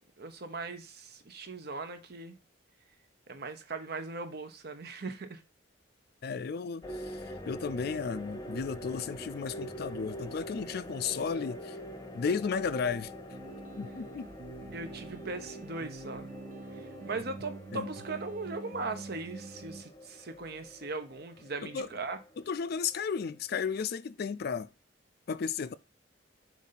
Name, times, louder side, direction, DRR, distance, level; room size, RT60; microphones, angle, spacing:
voice 1, 0.0-2.4 3.3-5.4 14.7-16.3 16.8-22.2, right 3 dB, 60° right, 0.9 m, -39 dB
voice 2, 6.2-11.8 12.1-13.1 13.8-14.3 17.7-17.9 21.6-21.9 22.4-24.7 25.3-25.7, left 6 dB, 55° left, 0.4 m, -34 dB
sound 1, 6.8-23.3, equal, 20° left, 0.8 m, -45 dB
sound 2, 13.3-19.8, right 3 dB, 45° right, 0.4 m, -46 dB
7.2 x 2.7 x 5.7 m
head